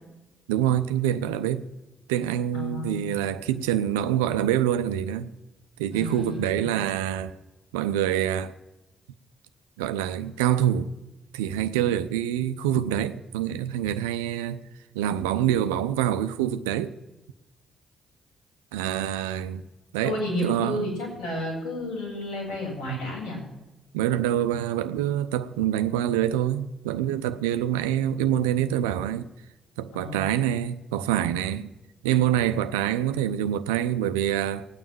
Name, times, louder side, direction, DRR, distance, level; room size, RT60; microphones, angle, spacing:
voice 1, 0.5-1.6 2.1-5.3 5.8-7.3 7.7-8.5 9.8-10.9 11.3-14.6 14.9-16.9 18.7-19.6 19.9-20.2 20.4-20.8 22.9-23.0 23.9-29.3 29.8-31.7 32.0-34.7, right 11 dB, 85° right, 0.6 m, -26 dB
voice 2, 2.5-3.1 5.9-6.7 20.0-23.4 29.9-30.2, left 1 dB, 80° left, 6.7 m, -32 dB
17.5 x 9.2 x 7.8 m
hypercardioid pair, 45°, 0 cm